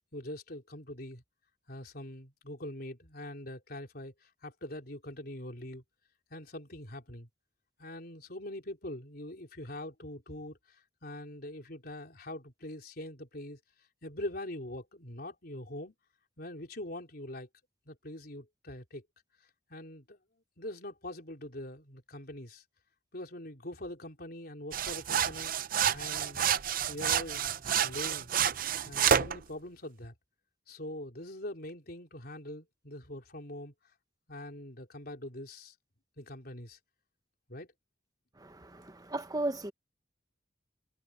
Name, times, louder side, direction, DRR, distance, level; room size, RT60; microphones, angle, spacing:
voice 1, 0.1-1.2 1.7-5.8 6.3-7.3 7.8-10.6 11.0-13.6 14.0-15.9 16.4-17.5 17.9-19.0 19.7-20.2 20.6-22.6 23.1-25.5 25.9-26.5 26.9-28.3 28.8-30.1 30.7-33.7 34.3-35.7 36.2-36.8 37.5-37.7, left 1 dB, 55° left, 4.0 m, -43 dB
sound 1, 24.7-29.4, right 8 dB, 50° right, 0.6 m, -29 dB
voice 2, 38.4-39.7, right 2 dB, 20° right, 1.2 m, -35 dB
head